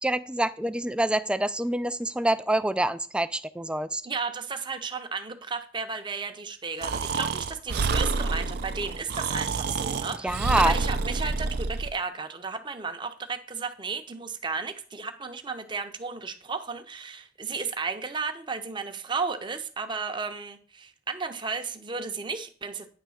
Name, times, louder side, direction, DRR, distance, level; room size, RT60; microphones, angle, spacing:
voice 1, 0.0-4.0 10.2-10.8, right 1 dB, 5° right, 0.3 m, -26 dB
voice 2, 4.0-22.9, right 4 dB, 25° right, 0.7 m, -34 dB
Breathing, 6.8-11.9, right 4 dB, 60° right, 0.5 m, -28 dB
9.3 x 3.3 x 6.3 m
head